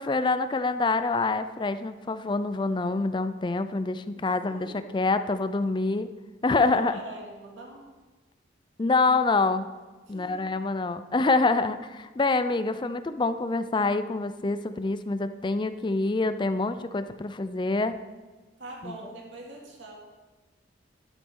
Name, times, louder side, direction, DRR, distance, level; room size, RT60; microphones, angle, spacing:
voice 1, 0.0-4.7 4.9-6.1 6.4-7.0 8.8-9.7 10.1-18.0 18.8-19.0, left 3 dB, 25° left, 11 dB, 0.4 m, -26 dB
voice 2, 4.2-4.9 6.6-7.9 10.1-10.4 18.6-20.0, right 2 dB, 80° right, -1 dB, 2.4 m, -42 dB
11.0 x 9.3 x 3.7 m, 1.2 s
head